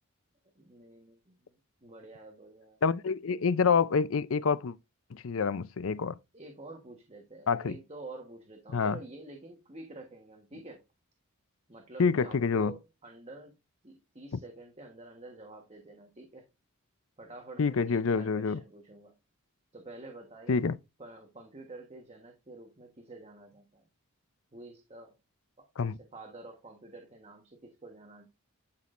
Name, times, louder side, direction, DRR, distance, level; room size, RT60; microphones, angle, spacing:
voice 1, 0.5-2.8 6.3-10.8 11.7-13.5 13.8-16.4 17.2-19.1 19.7-20.6 21.0-23.9 24.5-25.1 25.6-28.3, right 2 dB, 30° right, 1.3 m, -49 dB
voice 2, 2.8-4.7 5.1-6.2 7.5-7.8 8.7-9.0 12.0-12.7 17.6-18.6 20.5-20.8 25.8-26.0, left 5 dB, 65° left, 0.5 m, -27 dB
11.5 x 6.1 x 2.5 m
head